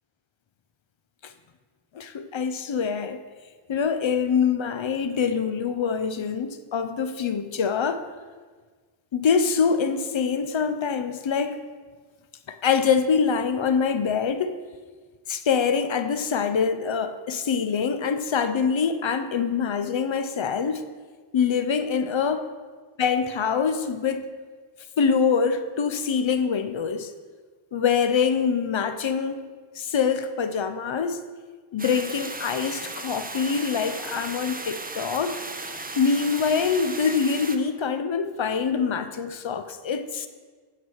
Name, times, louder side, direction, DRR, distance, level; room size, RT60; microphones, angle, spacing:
voice 1, 1.9-3.2 3.7-8.0 9.1-11.6 12.5-14.6 15.3-20.8 21.3-22.5 23.0-24.3 25.0-27.1 27.7-29.4 29.8-31.2 31.7-35.4 36.0-40.3, left 6 dB, 65° left, 10 dB, 0.7 m, -24 dB
sound 1, 31.8-37.6, right 2 dB, 20° right, 0.6 m, -36 dB
9.6 x 4.8 x 6.3 m, 1.4 s
wide cardioid pair, 65°, 49 cm